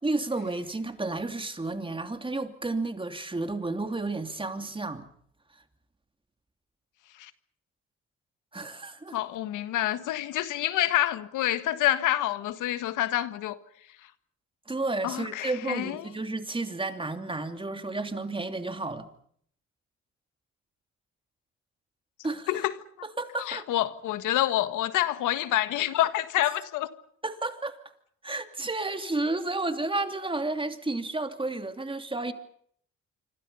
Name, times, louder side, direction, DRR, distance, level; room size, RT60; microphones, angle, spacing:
voice 1, 0.0-5.1 8.5-9.2 14.7-19.1 22.2-22.5 23.2-23.7 26.4-26.6 27.2-27.8 28.2-32.3, right 2 dB, 15° right, 2.9 m, -31 dB
voice 2, 9.1-13.6 14.0-14.1 15.0-16.1 22.5-22.7 23.4-26.9, left 13 dB, 90° left, 1.6 m, -27 dB
27.0 x 25.5 x 5.6 m
cardioid pair, 90°, 30 cm